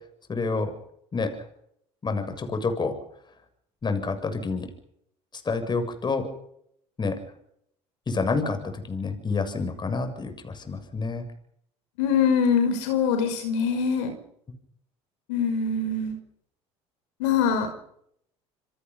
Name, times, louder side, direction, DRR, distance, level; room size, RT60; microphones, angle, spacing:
voice 1, 0.3-0.7 1.1-1.3 2.0-2.9 3.8-4.7 5.4-6.3 7.0-7.2 8.1-11.3, left 4 dB, 30° left, 7 dB, 7.2 m, -28 dB
voice 2, 12.0-14.1 15.3-16.1 17.2-17.7, left 6 dB, 80° left, 6 dB, 5.7 m, -23 dB
28.0 x 23.5 x 5.6 m, 0.72 s
hypercardioid pair, 80°, 15 cm